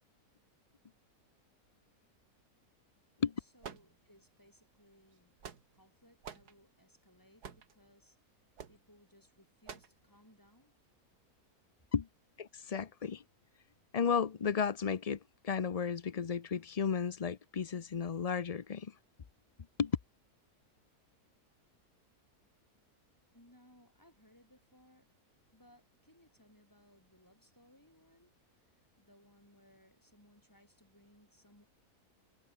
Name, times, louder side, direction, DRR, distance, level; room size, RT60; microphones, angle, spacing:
voice 1, 3.4-5.4 5.7-10.7 11.5-11.6 23.1-25.1 25.5-31.7, equal, 10° left, 6.1 m, -65 dB
sound 1, 3.6-4.4 5.1-5.9 6.2-6.5 7.4-7.8 8.6-8.8 9.7-10.0, right 7 dB, 90° right, 2.3 m, -48 dB
voice 2, 12.4-13.2 13.9-15.2 15.4-18.9 19.8-19.9, left 6 dB, 55° left, 0.4 m, -33 dB
omnidirectional pair, 1.6 m